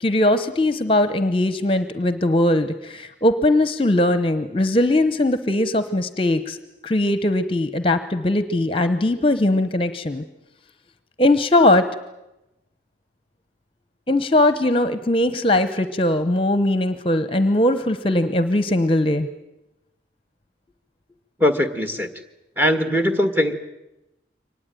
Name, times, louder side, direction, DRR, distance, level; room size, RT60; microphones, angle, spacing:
voice 1, 0.0-6.6 6.8-10.2 11.2-11.9 14.1-19.3, left 1 dB, 30° left, 12 dB, 0.9 m, -20 dB
voice 2, 21.4-22.1 22.6-23.5, left 1 dB, 10° right, 9 dB, 1.5 m, -20 dB
24.5 x 19.0 x 9.2 m, 0.95 s
head